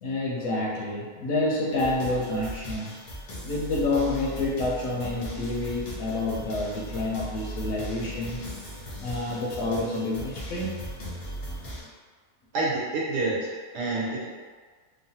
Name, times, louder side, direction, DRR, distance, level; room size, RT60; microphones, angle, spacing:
voice 1, 0.0-2.9 3.4-8.5 9.0-10.8, left 2 dB, 70° left, -4 dB, 0.9 m, -28 dB
sound 1, 1.7-11.8, right 1 dB, 55° left, 0.5 m, -38 dB
voice 2, 12.5-14.3, right 2 dB, 90° right, -5 dB, 1.3 m, -28 dB
3.2 x 2.1 x 2.7 m, 1.5 s
omnidirectional pair, 1.7 m